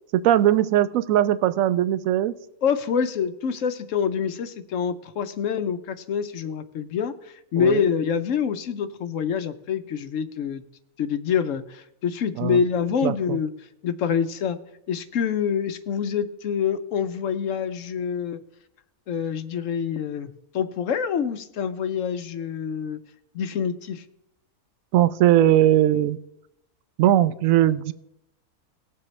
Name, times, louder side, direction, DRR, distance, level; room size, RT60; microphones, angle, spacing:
voice 1, 0.1-2.4 7.6-7.8 12.4-12.6 13.0-13.4 24.9-26.2 27.0-27.9, right 12 dB, 70° right, 15 dB, 0.9 m, -19 dB
voice 2, 2.6-10.6 11.0-13.5 13.8-14.6 14.9-18.4 19.1-23.0 23.3-24.0, left 7 dB, 65° left, 10 dB, 0.9 m, -26 dB
19.0 x 7.6 x 3.2 m, 0.81 s
omnidirectional pair, 1.5 m